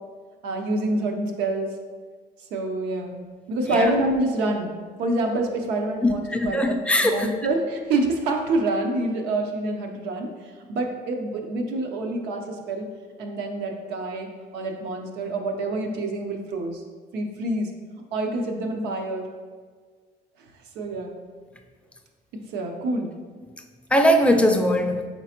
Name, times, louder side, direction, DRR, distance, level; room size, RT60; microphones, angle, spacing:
voice 1, 0.4-1.7 2.5-3.2 3.5-4.7 5.0-6.7 7.0-10.3 10.7-12.9 13.2-14.3 14.5-16.8 17.1-17.7 18.1-19.3 20.8-21.2 22.5-23.1, right 2 dB, 90° right, 3 dB, 0.7 m, -26 dB
voice 2, 6.0-7.3 23.9-25.1, equal, 5° left, 3 dB, 0.4 m, -20 dB
4.4 x 4.0 x 2.9 m, 1.5 s
cardioid pair, 110°, 17 cm